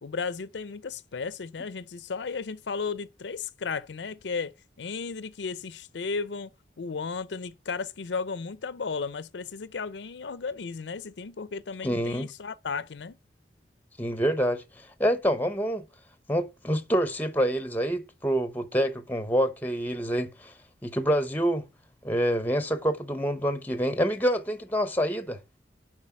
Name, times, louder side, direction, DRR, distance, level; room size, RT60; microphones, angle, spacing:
voice 1, 0.0-4.5 4.8-6.5 6.8-13.2, left 5 dB, 80° left, 0.5 m, -34 dB
voice 2, 11.8-12.3 14.0-15.8 16.3-20.5 20.8-21.7 22.0-25.4, equal, 10° left, 0.8 m, -27 dB
7.5 x 4.9 x 5.8 m
head